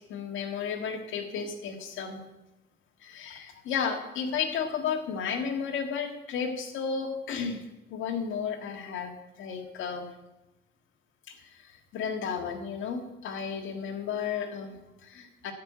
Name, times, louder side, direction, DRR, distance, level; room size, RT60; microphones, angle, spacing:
voice 1, 0.1-2.2 3.0-7.6 7.9-10.1 11.4-15.5, left 6 dB, 80° left, 5 dB, 1.8 m, -33 dB
12.5 x 5.5 x 8.4 m, 0.98 s
cardioid pair, 90°, 20 cm